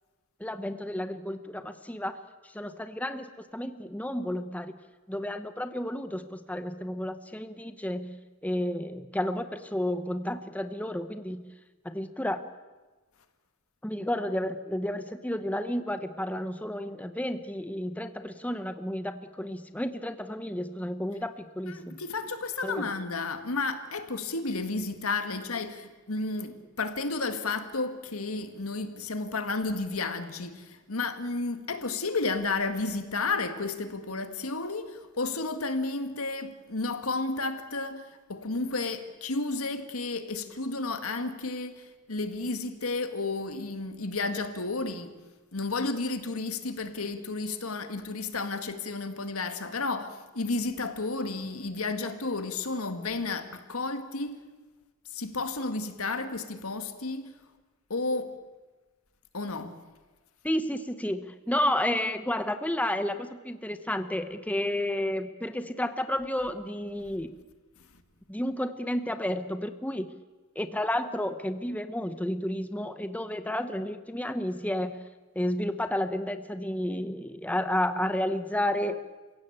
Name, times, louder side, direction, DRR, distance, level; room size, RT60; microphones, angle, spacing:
voice 1, 0.4-4.8 5.1-11.4 11.8-12.4 13.8-22.0 22.6-22.9 60.4-67.3 68.3-70.1 70.5-75.0 75.3-79.0, left 1 dB, 5° left, 0.8 m, -31 dB
voice 2, 21.7-45.1 45.5-54.4 55.1-57.4 57.9-58.3 59.3-59.8, left 3 dB, 80° left, 2.0 m, -32 dB
28.5 x 16.5 x 8.7 m
head